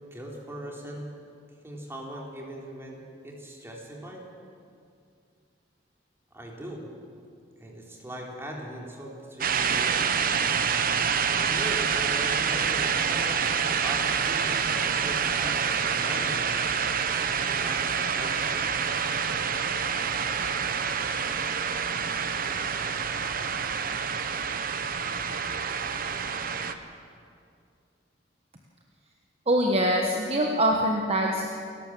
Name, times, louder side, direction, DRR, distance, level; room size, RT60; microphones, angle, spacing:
voice 1, 0.1-1.1 1.6-4.2 6.3-6.8 7.6-10.0 11.3-16.6 17.6-18.6, right 1 dB, 15° right, -2 dB, 3.5 m, -40 dB
sound 1, 9.4-26.7, right 6 dB, 55° right, 1.0 m, -27 dB
voice 2, 29.5-31.5, right 1 dB, 35° right, 1 dB, 1.4 m, -24 dB
29.0 x 12.0 x 7.7 m, 2.4 s
head